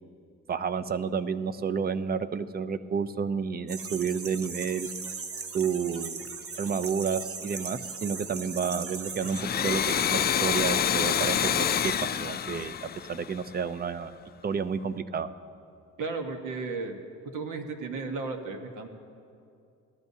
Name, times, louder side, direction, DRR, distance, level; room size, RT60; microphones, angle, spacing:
voice 1, 0.5-4.9 5.5-6.3 6.6-14.1 14.4-15.3, right 6 dB, 30° right, 12 dB, 0.5 m, -30 dB
sound 1, 3.7-9.4, right 5 dB, 50° right, 1.0 m, -38 dB
Domestic sounds home sounds, 9.2-13.7, left 8 dB, 35° left, 0.4 m, -27 dB
voice 2, 16.0-16.9 17.3-18.9, right 4 dB, 85° right, 5 dB, 1.3 m, -34 dB
19.5 x 12.5 x 2.7 m, 2.5 s
cardioid pair, 90°, 30 cm